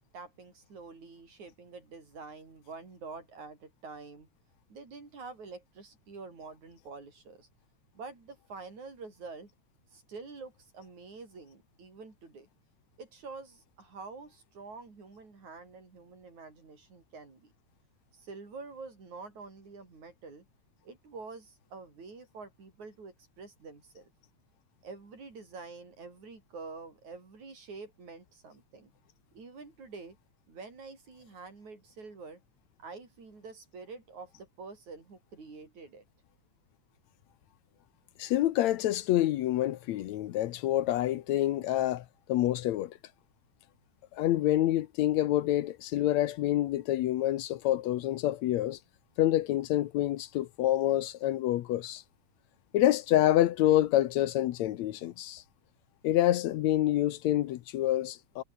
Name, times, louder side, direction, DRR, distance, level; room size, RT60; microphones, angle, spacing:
voice 1, 0.1-4.3 4.7-7.5 7.9-9.5 9.9-12.5 13.0-17.5 18.1-20.5 20.8-24.1 24.8-28.9 29.3-30.2 30.5-32.4 32.8-36.0, right 4 dB, 75° right, 7.5 m, -47 dB
voice 2, 38.2-43.0 44.1-48.8 49.2-52.0 52.7-55.4 56.0-58.4, left 14 dB, 75° left, 2.1 m, -27 dB
omnidirectional pair, 3.3 m